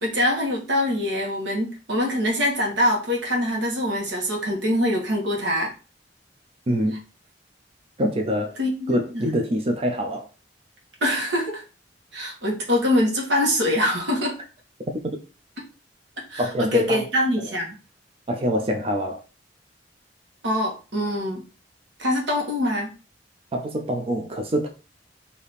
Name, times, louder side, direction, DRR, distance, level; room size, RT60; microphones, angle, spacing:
voice 1, 0.0-5.7 8.6-9.3 11.0-11.6 12.1-14.4 16.3-17.8 20.4-21.4 22.0-22.9, left 1 dB, 90° right, 1.3 m, -24 dB
voice 2, 6.7-7.0 8.0-8.6 8.9-10.3 16.4-17.1 17.4-17.5 18.3-19.2 23.5-24.7, equal, 35° right, 0.5 m, -25 dB
3.4 x 2.8 x 4.1 m
head